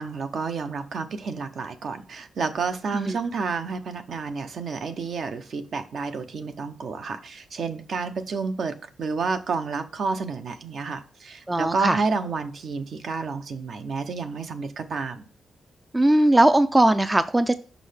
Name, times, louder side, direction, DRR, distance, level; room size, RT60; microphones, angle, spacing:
voice 1, 0.0-15.2, right 4 dB, 60° right, 0.7 m, -30 dB
voice 2, 11.5-12.0 15.9-17.6, right 1 dB, 15° right, 0.3 m, -19 dB
6.1 x 5.5 x 3.4 m
wide cardioid pair, 140°, 0 cm